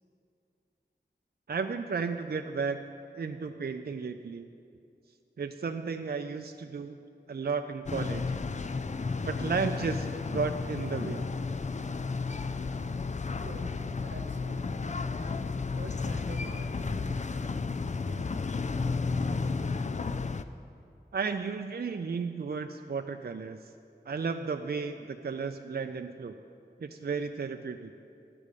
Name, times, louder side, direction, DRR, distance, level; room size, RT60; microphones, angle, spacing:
voice 1, 1.5-2.8 3.2-4.5 5.4-7.0 7.3-8.2 9.3-11.3 21.1-23.6 24.1-26.3 26.8-28.0, right 5 dB, 60° right, 7 dB, 0.4 m, -33 dB
sound 1, 7.9-20.4, left 4 dB, 40° left, 0.4 m, -32 dB
voice 2, 13.2-15.0 15.7-17.3, right 2 dB, 85° right, 3 dB, 0.9 m, -48 dB
11.0 x 4.9 x 8.3 m, 2.4 s
wide cardioid pair, 45°, 19 cm